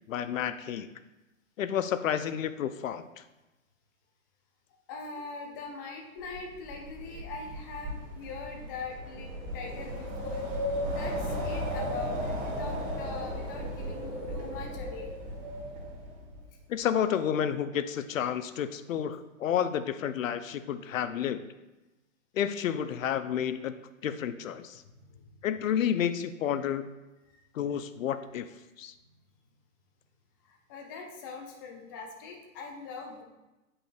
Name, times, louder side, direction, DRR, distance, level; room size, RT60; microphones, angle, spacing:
voice 1, 0.1-0.9 1.6-3.0 16.7-21.4 22.3-23.7 24.0-24.8 25.4-26.9 27.5-28.5 28.8-28.9, left 9 dB, 70° left, 12 dB, 0.5 m, -30 dB
voice 2, 4.9-15.1 24.9-25.4 27.3-27.4 30.4-33.2, left 4 dB, 15° left, 0 dB, 0.4 m, -42 dB
Wind, 6.3-16.4, equal, 30° right, 1.7 m, -35 dB
8.3 x 5.4 x 2.3 m, 1.0 s
hypercardioid pair, 130°, 41 cm